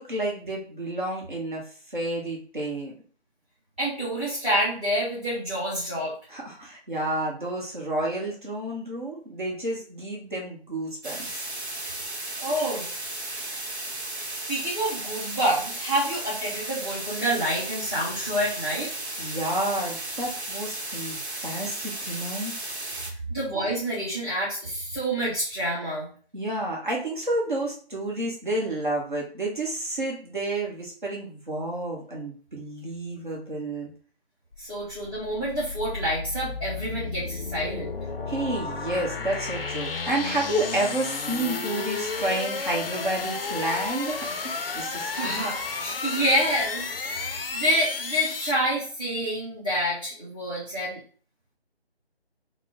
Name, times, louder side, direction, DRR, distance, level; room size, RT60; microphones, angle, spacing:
voice 1, 0.0-2.9 6.3-11.4 19.2-21.2 21.4-22.5 26.3-33.9 38.3-45.4, right 1 dB, 50° right, -2 dB, 0.9 m, -30 dB
voice 2, 3.8-6.1 12.4-12.9 14.5-18.9 23.3-26.1 34.6-38.0 45.1-51.0, equal, 10° right, -12 dB, 0.8 m, -28 dB
sound 1, 11.0-23.1, right 2 dB, 80° right, 0.9 m, -34 dB
sound 2, 34.5-48.5, left 4 dB, 60° left, 0.5 m, -32 dB
3.0 x 2.0 x 3.7 m, 0.42 s
figure-of-eight pair, 160°, 32 cm